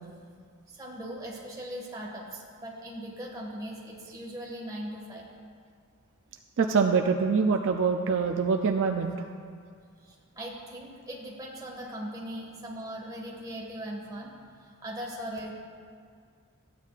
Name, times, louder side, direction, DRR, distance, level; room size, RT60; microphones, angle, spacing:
voice 1, 0.7-5.2 10.0-14.3 14.6-15.5, equal, 15° right, -3 dB, 1.7 m, -39 dB
voice 2, 6.6-9.3, right 5 dB, 60° right, 3 dB, 0.4 m, -25 dB
14.5 x 9.3 x 2.4 m, 2.1 s
head